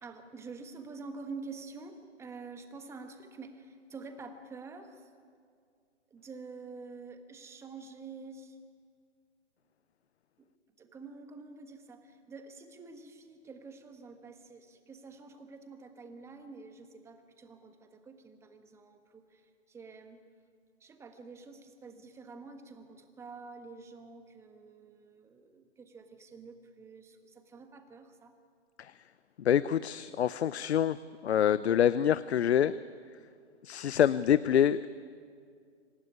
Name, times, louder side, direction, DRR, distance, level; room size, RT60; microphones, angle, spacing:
voice 1, 0.0-5.1 6.1-8.6 10.4-10.5 10.8-20.2 20.8-28.3, right 4 dB, 10° right, 7 dB, 1.4 m, -48 dB
voice 2, 29.4-31.0 31.2-32.7 33.6-34.9, left 9 dB, 65° left, 16 dB, 0.7 m, -26 dB
26.0 x 15.5 x 9.7 m, 2.2 s
hypercardioid pair, 145°, 35 cm